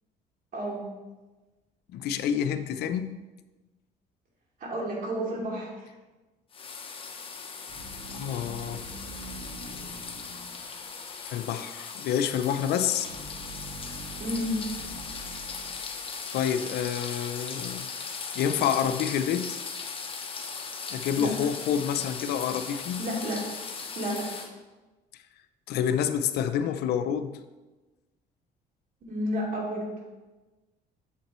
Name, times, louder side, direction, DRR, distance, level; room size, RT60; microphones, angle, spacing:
voice 1, 0.5-0.8 4.6-5.7 14.2-14.6 21.2-21.3 23.0-23.5 24.0-24.3 29.0-29.9, equal, 55° right, -3 dB, 2.6 m, -31 dB
voice 2, 1.9-3.2 8.1-8.8 11.2-13.1 16.3-17.9 18.3-19.6 20.9-23.0 25.7-27.4, left 9 dB, 75° left, 10 dB, 0.5 m, -28 dB
sound 1, 6.5-24.5, left 5 dB, 30° left, 0.9 m, -38 dB
sound 2, 7.7-11.0 13.0-16.3, right 2 dB, 80° right, 1.8 m, -44 dB
8.4 x 7.4 x 3.1 m, 1.2 s
cardioid pair, 110°, 17 cm